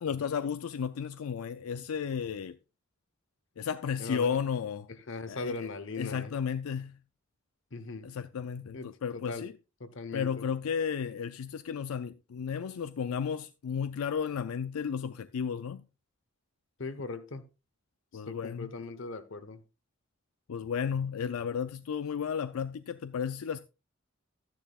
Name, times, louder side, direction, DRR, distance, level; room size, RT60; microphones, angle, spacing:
voice 1, 0.0-2.6 3.6-4.9 5.3-5.7 6.0-7.0 8.0-9.5 10.1-15.8 18.1-18.7 20.5-23.6, left 7 dB, 90° left, 0.4 m, -33 dB
voice 2, 4.0-4.4 5.1-6.4 7.7-8.1 8.7-8.9 9.1-9.5 9.8-10.5 16.8-17.4 18.3-19.6, left 3 dB, 60° left, 1.0 m, -39 dB
12.0 x 10.5 x 2.4 m
head